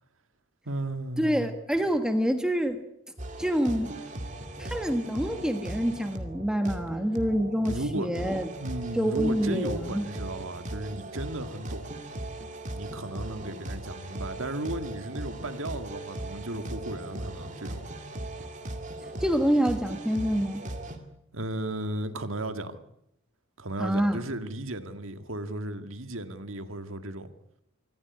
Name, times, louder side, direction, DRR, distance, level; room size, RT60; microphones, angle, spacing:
voice 1, 0.7-1.5 7.6-12.0 12.7-17.9 21.3-22.8 23.6-27.3, right 1 dB, 65° right, 8 dB, 1.9 m, -35 dB
voice 2, 1.2-2.8 3.4-3.9 4.6-8.5 8.9-10.1 19.0-20.6 23.8-24.2, equal, 5° right, 6 dB, 1.4 m, -27 dB
sound 1, 3.2-21.0, right 1 dB, 35° right, 2.5 m, -38 dB
25.5 x 15.0 x 9.7 m, 0.82 s
head